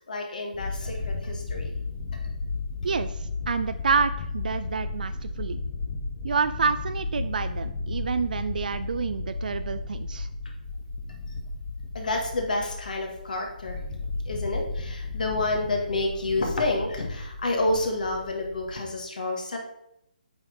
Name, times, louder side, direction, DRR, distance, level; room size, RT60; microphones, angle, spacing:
voice 1, 0.1-1.8 2.1-2.2 11.9-13.8 14.3-19.6, left 2 dB, 60° left, 1 dB, 1.7 m, -29 dB
sound 1, 0.5-18.9, left 3 dB, 35° left, 1.0 m, -34 dB
voice 2, 2.8-5.6 6.2-10.3, right 5 dB, 60° right, 11 dB, 0.3 m, -28 dB
8.7 x 4.1 x 4.0 m, 0.82 s
figure-of-eight pair, 145°, 5 cm